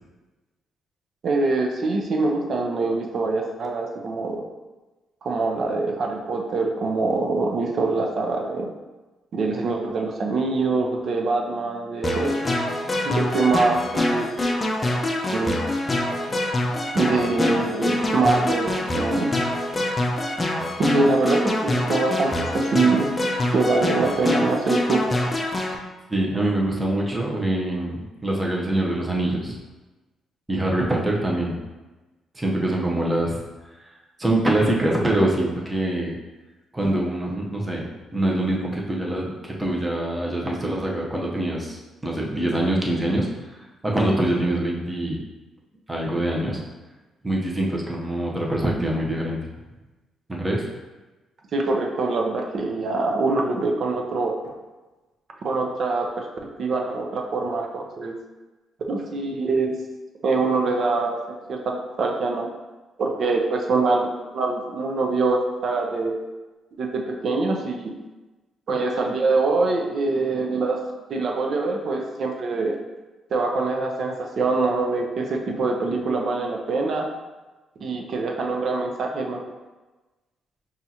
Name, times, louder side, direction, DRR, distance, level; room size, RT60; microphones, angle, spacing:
voice 1, 1.2-4.4 5.2-8.7 9.3-12.4 13.0-14.3 15.3-15.7 16.9-19.4 20.8-23.1 23.5-25.0 51.5-54.5 55.4-56.3 56.6-58.1 58.9-59.7 60.2-61.2 61.5-62.5 63.0-66.1 66.8-67.9 68.7-70.8 71.1-72.8 73.3-77.1 77.8-79.4, right 3 dB, 55° right, 2 dB, 0.6 m, -24 dB
sound 1, 12.0-25.8, left 1 dB, 25° left, 0.5 m, -25 dB
voice 2, 26.1-29.6 30.5-31.6 32.3-33.4 34.2-36.2 36.7-43.5 43.8-45.2 45.9-46.7 47.2-49.5 50.3-50.7, right 1 dB, 15° right, -3 dB, 0.8 m, -24 dB
5.5 x 2.4 x 2.8 m, 1.2 s
cardioid pair, 90°, 0 cm